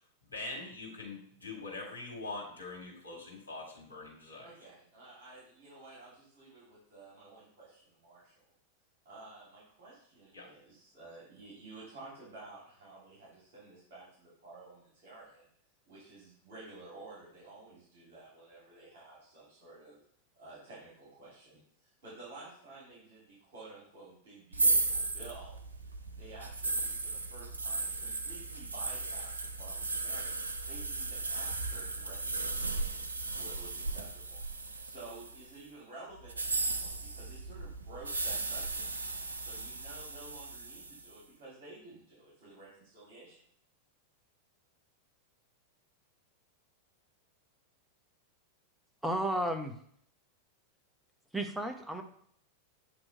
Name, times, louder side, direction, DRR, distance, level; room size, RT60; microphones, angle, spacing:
voice 1, 0.3-4.5 10.3-10.5, left 3 dB, 75° left, -2 dB, 1.8 m, -43 dB
voice 2, 4.4-8.5 9.0-15.5 15.9-20.0 20.3-25.6 26.1-30.4 30.7-33.0 33.3-34.4 34.8-38.9 39.4-43.4, right 2 dB, 50° right, -7 dB, 2.8 m, -52 dB
sound 1, 24.5-35.5 36.2-41.1, right 3 dB, 75° right, 0.5 m, -35 dB
voice 3, 49.0-49.7 51.3-52.0, right 1 dB, 5° right, 4 dB, 0.8 m, -33 dB
7.8 x 3.0 x 4.4 m, 0.64 s
figure-of-eight pair, 90°, 0 cm